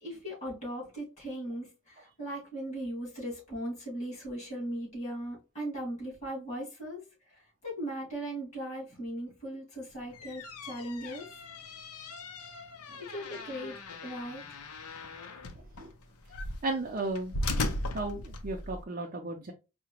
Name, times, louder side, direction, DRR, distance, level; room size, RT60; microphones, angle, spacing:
voice 1, 0.0-11.3 13.0-14.5, right 1 dB, 30° left, 2.2 m, -38 dB
sound 1, 10.0-18.8, left 2 dB, 90° left, 0.6 m, -38 dB
voice 2, 16.6-17.7 17.9-19.5, right 2 dB, 35° right, 0.5 m, -35 dB
4.7 x 2.2 x 2.9 m
head